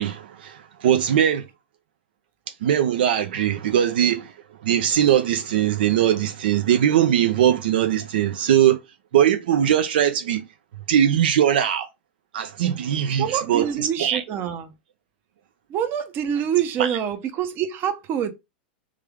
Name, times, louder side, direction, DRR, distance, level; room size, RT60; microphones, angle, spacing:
voice 1, 0.0-1.4 2.6-4.3 4.6-8.8 9.1-10.4 10.9-11.9 12.3-14.2 16.8-17.0, right 10 dB, 70° right, 0.5 m, -20 dB
voice 2, 13.2-14.7 15.7-18.3, right 9 dB, 40° right, 0.8 m, -26 dB
3.4 x 3.3 x 3.6 m
hypercardioid pair, 105°, 6 cm